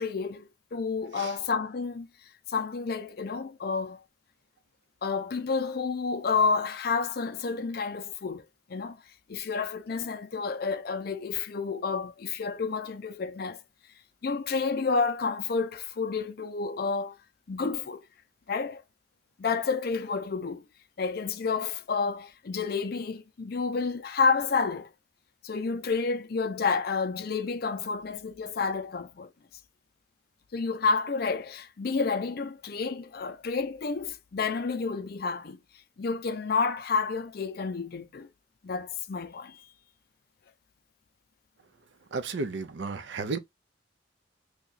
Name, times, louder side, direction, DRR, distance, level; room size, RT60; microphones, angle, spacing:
voice 1, 0.0-2.1 2.5-4.0 5.0-8.4 8.7-9.0 9.3-13.6 14.2-17.2 17.5-18.0 18.5-18.8 19.4-20.6 21.0-24.9 25.4-29.3 30.5-35.6 36.0-38.3 38.6-39.6, left 4 dB, 55° left, 0.5 m, -30 dB
voice 2, 42.1-43.4, right 4 dB, 70° right, 0.5 m, -33 dB
2.8 x 2.3 x 3.9 m
head